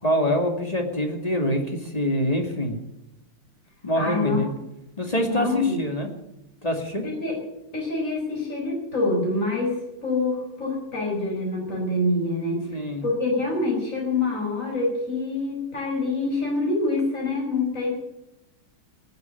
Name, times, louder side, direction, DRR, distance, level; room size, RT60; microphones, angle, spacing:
voice 1, 0.0-2.8 3.8-4.5 5.0-6.1 6.6-7.0 12.7-13.0, equal, 15° left, 3 dB, 2.3 m, -25 dB
voice 2, 3.9-4.4 5.2-5.8 7.0-7.4 7.7-12.6 13.0-17.9, left 2 dB, 35° left, -1 dB, 5.9 m, -26 dB
19.0 x 8.1 x 9.1 m, 0.90 s
omnidirectional pair, 2.4 m